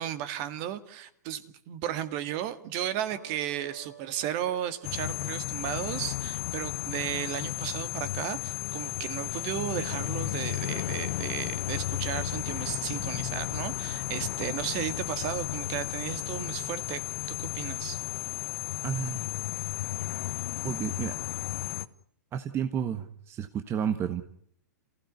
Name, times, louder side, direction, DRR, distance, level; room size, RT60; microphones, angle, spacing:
voice 1, 0.0-18.0, right 11 dB, 45° right, 2.0 m, -34 dB
sound 1, 3.1-9.6, right 6 dB, 80° right, 6.8 m, -53 dB
sound 2, 4.8-21.8, left 13 dB, 50° left, 1.2 m, -33 dB
Guitar, 10.8-18.5, left 6 dB, 15° left, 2.8 m, -56 dB
voice 2, 18.8-19.2 20.6-21.1 22.3-24.2, right 8 dB, 25° right, 1.4 m, -31 dB
28.0 x 16.0 x 9.5 m
hypercardioid pair, 120°, 10 cm